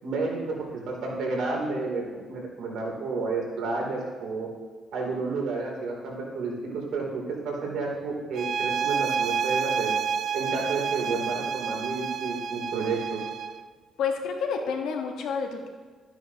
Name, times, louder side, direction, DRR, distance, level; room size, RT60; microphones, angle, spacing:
voice 1, 0.0-4.5 4.9-9.9 10.3-13.2, right 3 dB, 80° right, -2 dB, 2.7 m, -31 dB
sound 1, 8.3-13.6, right 7 dB, 60° right, 0.4 m, -29 dB
voice 2, 14.0-15.7, left 5 dB, 85° left, 3 dB, 1.2 m, -29 dB
13.0 x 9.2 x 2.8 m, 1.5 s
cardioid pair, 90°, 0 cm